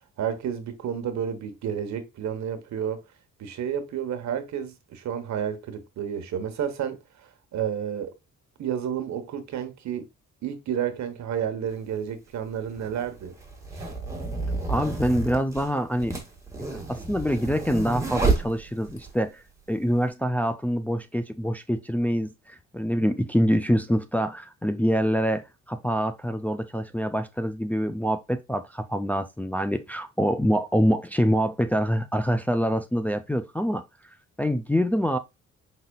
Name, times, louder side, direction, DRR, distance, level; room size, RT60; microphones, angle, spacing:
voice 1, 0.2-3.0 3.4-7.0 7.5-8.1 8.6-10.0 10.4-13.3 13.8-13.9, right 8 dB, 70° right, 1.0 m, -31 dB
sound 1, 11.7-11.8 12.7-19.1, right 3 dB, 10° right, 1.7 m, -30 dB
voice 2, 14.7-16.2 16.9-33.8 34.4-35.2, equal, 5° left, 0.4 m, -25 dB
5.1 x 4.0 x 2.2 m
cardioid pair, 105°, 29 cm